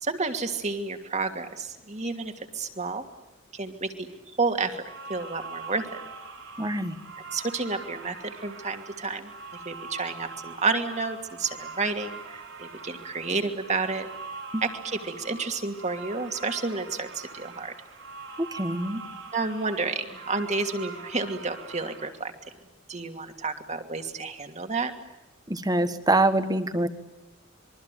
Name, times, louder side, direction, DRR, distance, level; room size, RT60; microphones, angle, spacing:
voice 1, 0.0-3.0 3.5-4.1 4.4-4.8 5.1-5.9 7.3-9.3 9.7-14.1 14.6-17.7 19.3-22.3 22.9-24.9, right 3 dB, 35° right, 6 dB, 2.6 m, -30 dB
sound 1, 4.7-22.1, right 4 dB, 75° right, 7.5 m, -43 dB
voice 2, 6.6-7.0 14.5-14.6 18.4-19.1 25.5-26.9, right 2 dB, 20° right, 10 dB, 1.6 m, -25 dB
26.5 x 23.0 x 9.3 m, 0.95 s
head